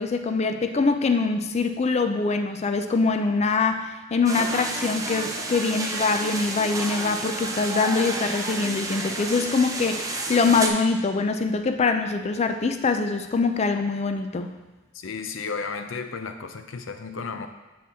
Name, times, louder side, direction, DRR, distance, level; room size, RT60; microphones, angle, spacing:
voice 1, 0.0-14.5, left 4 dB, 35° left, 7 dB, 0.4 m, -24 dB
sound 1, 4.2-10.7, right 2 dB, 20° right, 0.6 m, -31 dB
voice 2, 14.9-17.5, left 4 dB, 90° left, 7 dB, 0.6 m, -33 dB
10.0 x 4.4 x 3.6 m, 1.1 s
head